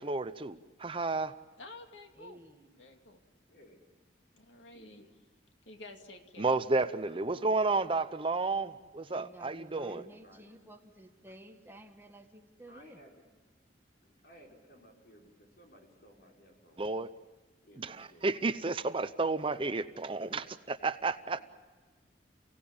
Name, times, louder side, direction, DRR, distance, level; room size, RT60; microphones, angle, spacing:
voice 1, 0.0-1.3 6.4-10.0 16.8-17.1 17.8-21.4, right 3 dB, 30° right, 12 dB, 0.7 m, -32 dB
voice 2, 1.6-2.4 2.8-3.2 4.3-5.0 5.7-6.6, left 2 dB, 90° left, 4 dB, 2.4 m, -50 dB
voice 3, 2.1-2.8 9.1-13.0, right 1 dB, 15° right, 4 dB, 1.7 m, -53 dB
voice 4, 3.5-3.8 4.7-5.1 9.8-10.5 12.7-13.2 14.0-16.8 17.6-18.3, equal, 55° left, 0 dB, 5.3 m, -57 dB
29.5 x 18.0 x 8.7 m, 1.4 s
head